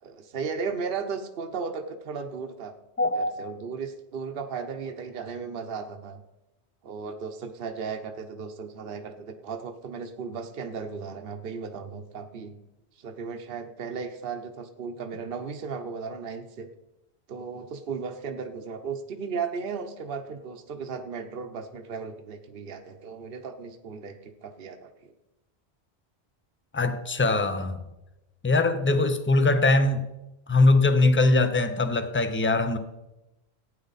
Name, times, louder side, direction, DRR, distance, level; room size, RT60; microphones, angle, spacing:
voice 1, 0.0-2.7 3.1-6.2 6.8-12.6 13.0-16.7 17.3-25.1, right 5 dB, 60° right, 1.0 m, -35 dB
voice 2, 3.0-3.3 26.7-27.8 28.4-30.0 30.5-32.8, left 2 dB, 15° left, 0.6 m, -22 dB
15.5 x 9.2 x 4.0 m
omnidirectional pair, 1.1 m